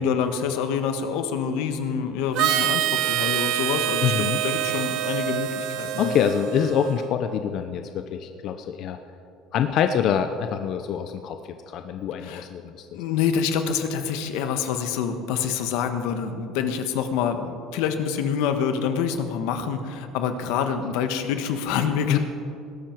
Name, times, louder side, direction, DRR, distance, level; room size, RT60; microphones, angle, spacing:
voice 1, 0.0-6.2 12.2-12.5 12.9-22.2, left 7 dB, 80° left, 7 dB, 1.3 m, -26 dB
Harmonica, 2.3-7.1, right 12 dB, 60° right, 0.7 m, -26 dB
voice 2, 4.0-4.4 6.0-9.0 9.5-11.4 11.7-12.9 22.1-22.2, left 8 dB, 50° left, 7 dB, 0.6 m, -25 dB
19.0 x 12.0 x 4.6 m, 2.6 s
cardioid pair, 155°, 0 cm